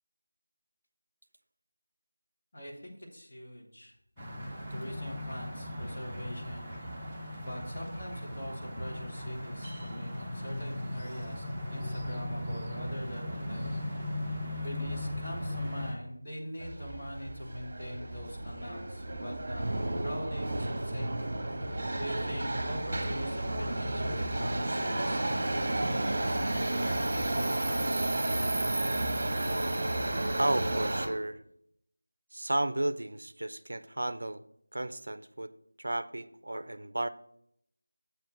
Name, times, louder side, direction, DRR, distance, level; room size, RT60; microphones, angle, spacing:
voice 1, 2.5-3.9 4.7-6.8 7.4-13.8 14.6-21.2 21.7-26.4 26.8-28.0, equal, 35° left, -2 dB, 1.8 m, -42 dB
sound 1, 4.2-15.9, left 1 dB, 5° right, 0.9 m, -38 dB
Subway metro underground, 16.6-31.1, right 1 dB, 30° right, 1.3 m, -32 dB
voice 2, 30.4-31.4 32.3-34.4 34.7-35.5 35.8-37.1, right 1 dB, 55° right, 14 dB, 0.5 m, -33 dB
7.6 x 4.4 x 5.9 m, 0.72 s
figure-of-eight pair, 170°, 0 cm